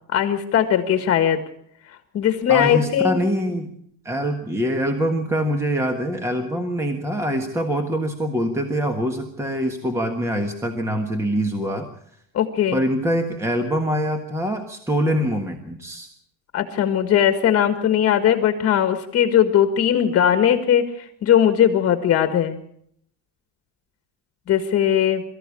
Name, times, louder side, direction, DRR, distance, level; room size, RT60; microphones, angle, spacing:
voice 1, 0.1-1.4 2.1-3.2 12.3-12.8 16.5-22.6 24.5-25.2, left 9 dB, 40° left, 8 dB, 1.6 m, -19 dB
voice 2, 2.5-3.7 4.0-11.9 12.7-16.1, equal, 5° right, 5 dB, 1.5 m, -24 dB
23.0 x 14.0 x 8.5 m, 0.69 s
cardioid pair, 160°, 36 cm